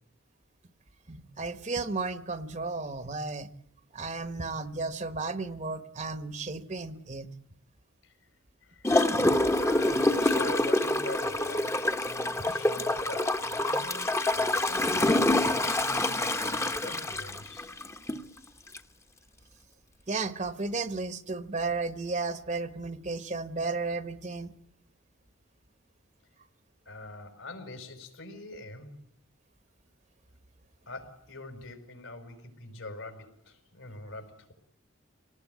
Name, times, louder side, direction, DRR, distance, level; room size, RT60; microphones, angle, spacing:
voice 1, 1.1-3.5 3.9-7.3 20.1-24.5, right 3 dB, 35° right, 11 dB, 1.1 m, -33 dB
voice 2, 8.6-8.9 9.3-17.7 26.8-29.0 30.8-34.5, left 2 dB, 70° left, 7 dB, 5.3 m, -44 dB
Gurgling / Toilet flush, 8.8-18.3 18.7-18.8, left 1 dB, 15° left, 1.0 m, -26 dB
26.0 x 19.0 x 9.3 m, 0.72 s
head